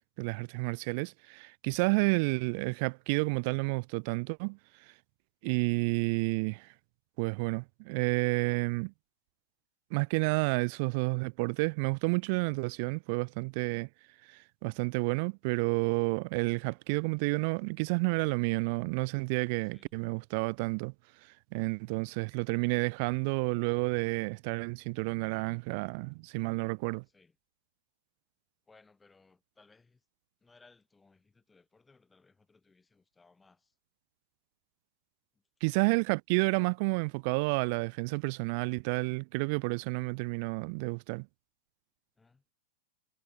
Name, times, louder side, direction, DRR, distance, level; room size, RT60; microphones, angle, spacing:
voice 1, 0.2-4.9 5.4-6.7 7.2-8.9 9.9-13.9 14.3-20.9 21.2-27.0 35.6-41.3, right 31 dB, 55° right, 0.4 m, -30 dB
voice 2, 19.6-19.9 21.8-22.1 27.0-27.4 28.7-30.1 30.4-33.8 35.3-35.4 42.2-42.4, left 4 dB, 10° left, 5.6 m, -64 dB
hypercardioid pair, 110°, 0 cm